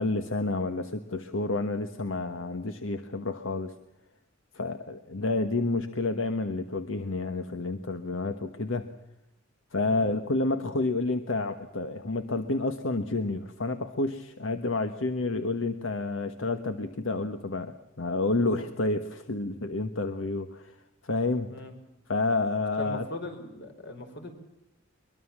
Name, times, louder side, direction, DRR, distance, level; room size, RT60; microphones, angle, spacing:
voice 1, 0.0-3.7 4.5-8.9 9.7-20.8 21.0-21.5 22.1-23.1, left 2 dB, 85° left, 9 dB, 1.3 m, -29 dB
voice 2, 22.8-24.3, left 1 dB, 65° left, 6 dB, 5.2 m, -39 dB
23.0 x 22.5 x 7.4 m, 0.85 s
head